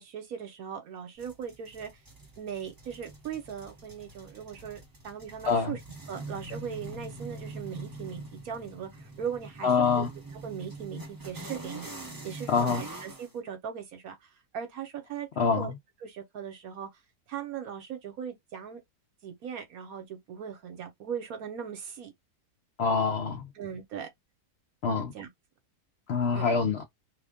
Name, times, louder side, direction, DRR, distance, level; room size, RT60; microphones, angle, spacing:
voice 1, 0.0-1.9 2.4-5.8 6.1-10.1 10.4-11.9 12.2-14.2 14.5-15.7 16.0-16.9 17.3-18.8 19.2-22.1 23.6-24.1 25.0-25.3 26.3-26.5, right 8 dB, 65° right, 1.3 m, -39 dB
sound 1, 1.2-13.3, right 2 dB, 30° right, 0.4 m, -44 dB
voice 2, 5.4-5.8 9.6-10.1 12.5-12.8 15.4-15.7 22.8-23.5 24.8-25.1 26.1-26.8, left 5 dB, 85° left, 0.5 m, -25 dB
2.9 x 2.3 x 3.4 m
omnidirectional pair, 1.7 m